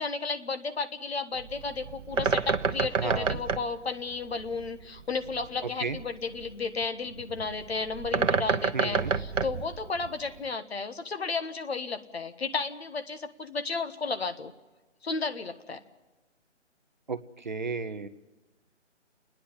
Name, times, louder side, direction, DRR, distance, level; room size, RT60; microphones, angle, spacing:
voice 1, 0.0-14.5 15.0-15.8, left 4 dB, 55° left, 10 dB, 1.3 m, -33 dB
Bird, 1.3-10.5, right 5 dB, 90° right, 0.9 m, -31 dB
voice 2, 3.0-3.4 5.6-6.0 8.7-9.1 17.1-18.1, right 4 dB, 40° right, 10 dB, 0.7 m, -33 dB
28.5 x 10.0 x 9.7 m, 1.2 s
figure-of-eight pair, 165°, 36 cm